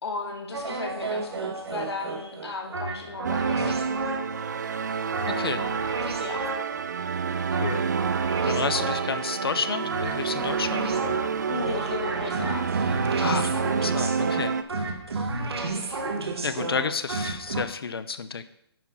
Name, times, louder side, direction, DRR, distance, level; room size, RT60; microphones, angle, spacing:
voice 1, 0.0-4.1 5.3-5.8 6.2-6.5 7.2-7.5 11.5-12.7, left 3 dB, 85° left, 0 dB, 2.4 m, -35 dB
sound 1, 0.5-4.5 5.1-6.9 7.5-9.2 9.9-17.6, right 3 dB, 75° right, 1.6 m, -32 dB
sound 2, 3.2-14.6, right 6 dB, 45° right, 0.5 m, -28 dB
voice 2, 7.5-7.9 8.4-11.2 12.9-14.6 16.4-18.4, left 5 dB, 65° left, 12 dB, 0.8 m, -31 dB
10.0 x 4.7 x 5.6 m, 0.72 s
hypercardioid pair, 175°, 13 cm